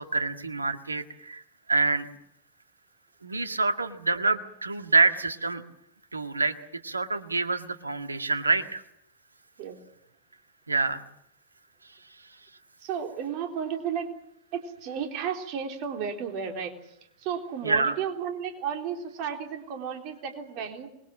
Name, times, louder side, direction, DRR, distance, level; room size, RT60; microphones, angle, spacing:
voice 1, 0.0-1.4 1.7-2.1 3.2-5.6 6.1-6.6 6.8-8.8 10.7-11.0 17.6-17.9, right 3 dB, 80° right, 8 dB, 1.7 m, -26 dB
voice 2, 12.8-14.1 14.5-16.7 17.2-20.9, right 7 dB, 45° right, 4 dB, 3.8 m, -33 dB
26.0 x 22.0 x 7.6 m, 0.74 s
figure-of-eight pair, 90°, 0 cm